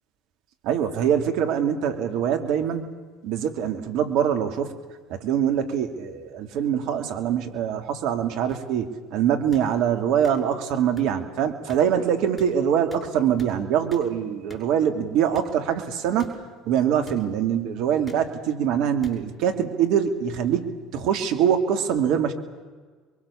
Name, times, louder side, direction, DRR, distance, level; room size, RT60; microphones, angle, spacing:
voice 1, 0.6-2.8 3.2-4.7 5.1-16.4 16.7-22.3, right 8 dB, 65° right, 6 dB, 2.7 m, -24 dB
sound 1, 8.5-8.6 9.5-9.7 10.2-10.3 11.0-11.1 11.7-11.8 12.4-12.5 12.9-13.0 13.4-13.5 13.9-14.0 14.5-14.6 15.3-15.5 16.2-16.3 17.0-17.2 18.1-18.2 19.0-19.1 20.0-20.1, right 1 dB, 10° left, 6.2 m, -43 dB
27.0 x 23.0 x 7.2 m, 1.4 s
hypercardioid pair, 70°, 0 cm